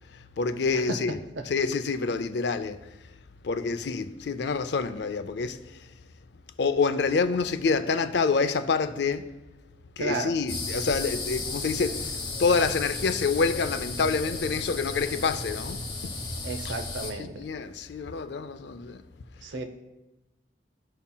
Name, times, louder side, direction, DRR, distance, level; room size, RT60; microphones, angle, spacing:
voice 1, 0.1-1.2 1.4-2.8 3.4-5.9 6.6-9.3 10.0-12.0 12.4-16.1 16.6-16.7 17.2-19.0, left 4 dB, 60° left, 0.4 m, -27 dB
voice 2, 10.0-10.3 16.4-17.4 19.4-19.6, right 2 dB, 75° right, 0.7 m, -32 dB
sound 1, 10.5-17.1, left 3 dB, 25° left, 0.8 m, -34 dB
14.0 x 5.5 x 2.2 m
head